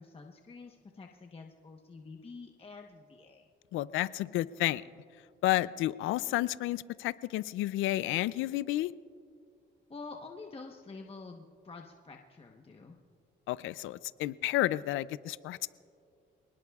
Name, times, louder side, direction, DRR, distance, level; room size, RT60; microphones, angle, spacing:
voice 1, 0.0-3.5 9.9-13.0, left 4 dB, 30° left, 2 dB, 1.0 m, -48 dB
voice 2, 3.7-4.8 5.4-8.9 13.5-15.7, left 15 dB, 90° left, 17 dB, 0.4 m, -31 dB
27.5 x 19.5 x 2.4 m, 2.3 s
cardioid pair, 90°, 20 cm